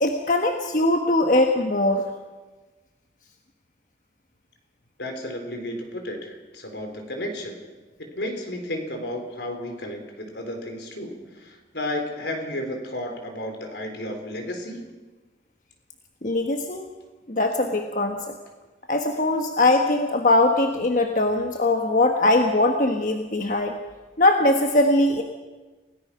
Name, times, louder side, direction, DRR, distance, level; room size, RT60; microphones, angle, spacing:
voice 1, 0.0-2.0 16.2-16.9 17.3-18.2 18.9-23.7 24.2-25.2, left 2 dB, 45° left, 4 dB, 1.3 m, -21 dB
voice 2, 5.0-7.6 8.0-14.8, left 1 dB, 75° left, 4 dB, 4.1 m, -33 dB
29.5 x 17.5 x 5.8 m, 1.2 s
head